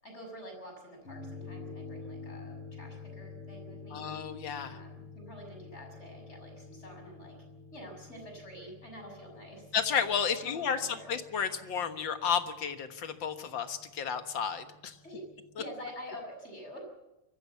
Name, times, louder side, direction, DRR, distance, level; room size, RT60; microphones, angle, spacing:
voice 1, 0.0-4.1 4.7-7.3 7.7-9.8 10.4-11.1 15.0-15.2 15.6-16.8, equal, 30° left, 2 dB, 6.3 m, -47 dB
sound 1, 1.1-15.6, left 4 dB, 90° left, 5.6 m, -49 dB
voice 2, 3.9-4.8 9.7-15.0, left 7 dB, 60° left, 8 dB, 2.1 m, -32 dB
23.5 x 15.0 x 8.3 m, 0.98 s
omnidirectional pair, 2.3 m